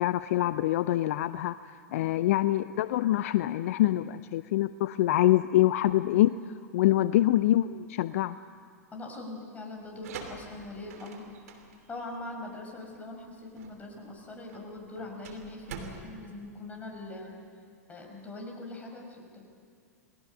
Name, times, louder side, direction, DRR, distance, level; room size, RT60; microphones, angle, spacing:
voice 1, 0.0-6.3 6.7-8.4, left 14 dB, 60° left, 14 dB, 0.5 m, -25 dB
voice 2, 8.9-11.3 11.9-17.3 17.9-19.2, left 2 dB, 15° left, 0 dB, 5.6 m, -42 dB
sound 1, 9.8-17.4, right 5 dB, 65° right, 3.1 m, -47 dB
29.0 x 20.5 x 5.6 m, 2.2 s
figure-of-eight pair, 100°, 9 cm